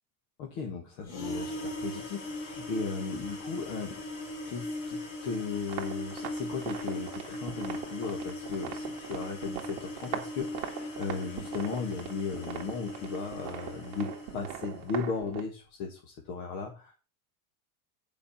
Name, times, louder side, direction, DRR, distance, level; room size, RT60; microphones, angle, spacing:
voice 1, 0.4-4.0 4.5-16.9, left 5 dB, 35° left, 2 dB, 1.8 m, -36 dB
sound 1, 1.0-15.0, left 1 dB, 55° left, 3.0 m, -40 dB
sound 2, 5.6-15.4, right 10 dB, 40° right, 1.9 m, -41 dB
10.0 x 5.1 x 7.1 m, 0.34 s
supercardioid pair, 175°, 48 cm